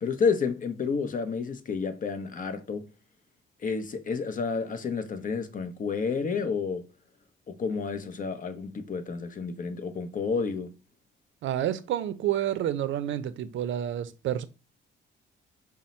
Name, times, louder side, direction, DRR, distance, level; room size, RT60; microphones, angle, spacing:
voice 1, 0.0-2.9 3.6-6.9 7.5-10.8, left 5 dB, 40° left, 0.7 m, -30 dB
voice 2, 11.4-14.4, right 11 dB, 75° right, 0.5 m, -29 dB
5.2 x 2.1 x 4.2 m
cardioid pair, 90°, 20 cm